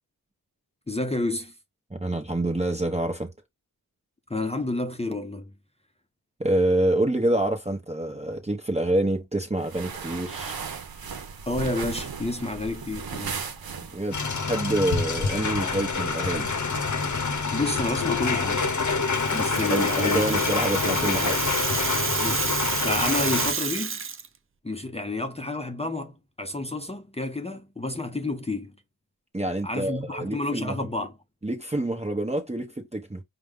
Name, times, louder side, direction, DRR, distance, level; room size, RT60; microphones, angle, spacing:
voice 1, 0.9-1.5 4.3-5.5 11.5-13.4 17.5-18.7 19.3-20.2 22.2-24.0 24.6-28.8 29.6-31.2, left 2 dB, 15° left, 0.7 m, -30 dB
voice 2, 1.9-3.3 6.4-10.6 13.9-16.5 19.7-21.4 29.3-30.8 31.4-33.2, right 1 dB, 15° right, 0.9 m, -27 dB
sound 1, 9.6-14.3, right 5 dB, 70° right, 0.8 m, -36 dB
sound 2, 14.1-23.5, left 4 dB, 50° left, 0.9 m, -26 dB
Rattle (instrument), 19.0-24.3, right 6 dB, 35° right, 0.5 m, -30 dB
5.0 x 2.2 x 3.6 m
wide cardioid pair, 65°, 37 cm